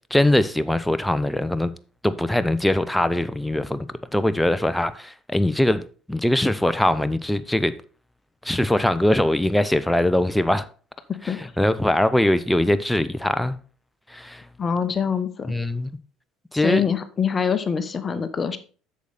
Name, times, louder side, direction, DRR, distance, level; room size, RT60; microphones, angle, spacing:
voice 1, 0.1-1.7 2.0-3.9 4.1-7.7 8.4-10.7 11.2-13.6 14.1-14.4 15.5-15.9 16.5-16.8, left 1 dB, 5° left, 0.8 m, -22 dB
voice 2, 14.6-15.5 16.6-18.6, left 6 dB, 35° left, 1.0 m, -24 dB
8.1 x 6.7 x 4.1 m
hypercardioid pair, 65°, 0 cm